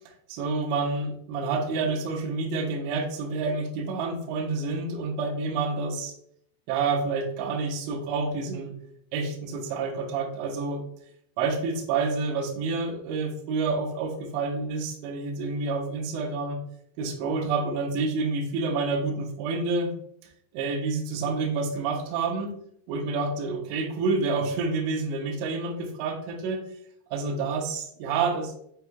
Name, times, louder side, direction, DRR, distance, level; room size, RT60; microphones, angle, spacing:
voice 1, 0.3-6.1 6.7-8.7 9.1-10.8 11.4-16.6 17.0-19.9 20.5-22.6 22.9-26.6 27.1-28.5, right 4 dB, 80° right, 1 dB, 2.7 m, -28 dB
7.9 x 2.8 x 2.2 m, 0.68 s
omnidirectional pair, 5.8 m